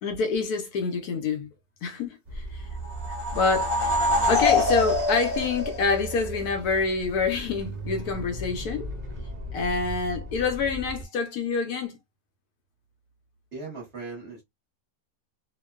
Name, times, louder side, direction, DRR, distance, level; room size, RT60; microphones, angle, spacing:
voice 1, 0.0-1.5 1.8-2.7 3.3-8.9 9.5-12.0, left 4 dB, 70° left, 1.0 m, -27 dB
sound 1, 2.3-11.1, right 2 dB, 70° right, 0.4 m, -37 dB
sound 2, 2.8-6.4, left 2 dB, 10° right, 1.0 m, -25 dB
voice 2, 13.5-14.4, right 4 dB, 45° right, 1.0 m, -38 dB
2.8 x 2.1 x 2.3 m
omnidirectional pair, 1.8 m